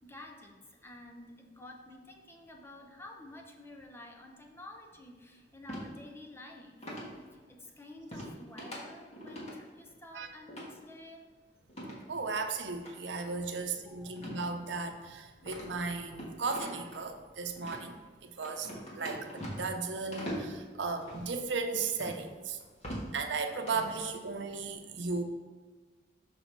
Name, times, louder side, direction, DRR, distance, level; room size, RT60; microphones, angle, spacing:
voice 1, 0.0-7.0 7.3-11.2 13.9-14.1, left 1 dB, 15° left, 1 dB, 0.8 m, -50 dB
sound 1, 5.7-5.9 6.8-7.1 8.1-8.3 8.6-8.8 9.1-9.5 10.5-10.7 11.7-12.0 12.8-12.9 14.2-14.4 14.7-14.8 15.4-17.0 17.6-17.8 18.4-19.8 20.1-20.5 21.0-21.3 22.0-22.2 22.6-23.1 23.5-23.9, equal, 35° left, 1.6 m, -41 dB
voice 2, 12.1-17.9 18.2-18.7 18.9-22.6 23.1-25.2, right 4 dB, 85° right, 5 dB, 0.7 m, -35 dB
6.2 x 5.5 x 4.0 m, 1.4 s
head